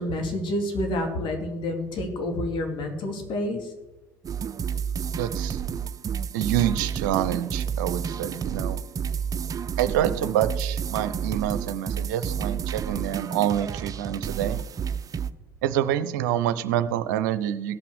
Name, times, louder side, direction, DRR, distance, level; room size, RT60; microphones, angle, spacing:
voice 1, 0.0-3.7, left 1 dB, 50° left, 4 dB, 2.6 m, -28 dB
sound 1, 4.2-15.3, right 7 dB, 35° right, 0.6 m, -30 dB
voice 2, 5.2-5.6 6.3-8.8 9.8-14.6 15.6-17.8, right 11 dB, 70° right, 12 dB, 0.7 m, -27 dB
16.5 x 5.9 x 6.3 m, 1.1 s
hypercardioid pair, 60°, 10 cm